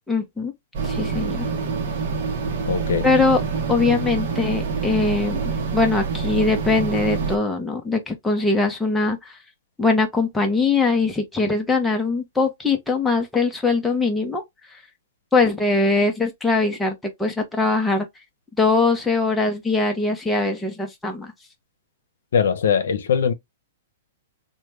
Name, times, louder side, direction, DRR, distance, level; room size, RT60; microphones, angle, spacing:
voice 1, 0.1-0.5 0.8-1.5 3.0-3.4 3.7-9.4 9.8-14.4 14.7-14.8 15.3-18.1 18.6-21.3, left 3 dB, 5° left, 0.7 m, -21 dB
sound 1, 0.7-7.4, right 5 dB, 50° right, 0.8 m, -26 dB
voice 2, 2.7-3.1 22.3-23.3, left 6 dB, 75° left, 0.7 m, -21 dB
3.2 x 2.2 x 3.2 m
hypercardioid pair, 150°, 0 cm